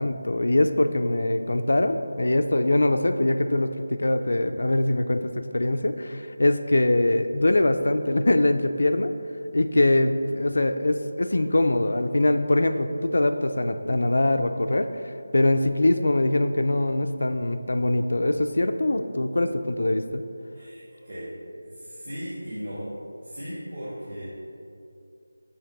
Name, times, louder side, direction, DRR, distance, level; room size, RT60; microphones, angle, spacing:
voice 1, 0.0-3.7 4.0-9.1 9.5-14.9 15.3-20.2, left 1 dB, 65° left, 8 dB, 0.3 m, -23 dB
voice 2, 20.5-21.3 21.6-22.9 23.2-24.3, equal, 45° right, -11 dB, 1.4 m, -37 dB
7.2 x 2.8 x 5.1 m, 2.6 s
figure-of-eight pair, 180°, 0 cm